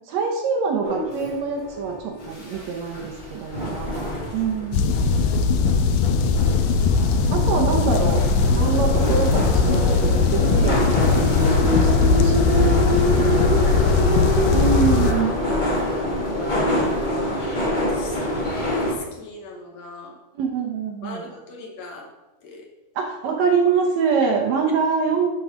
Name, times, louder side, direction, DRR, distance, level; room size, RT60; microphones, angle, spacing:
voice 1, 0.1-4.9 7.3-12.8 14.5-15.4 20.4-21.3 23.0-25.3, right 5 dB, 70° right, 1 dB, 2.0 m, -25 dB
sound 1, 0.8-18.9, equal, 30° left, 0.8 m, -25 dB
sound 2, 4.7-15.1, left 5 dB, 85° left, 2.2 m, -19 dB
voice 2, 17.6-18.3 18.7-20.2 21.0-22.1 22.4-22.7, left 2 dB, 65° left, 1 dB, 2.0 m, -40 dB
11.5 x 3.9 x 5.0 m, 1.1 s
omnidirectional pair, 3.7 m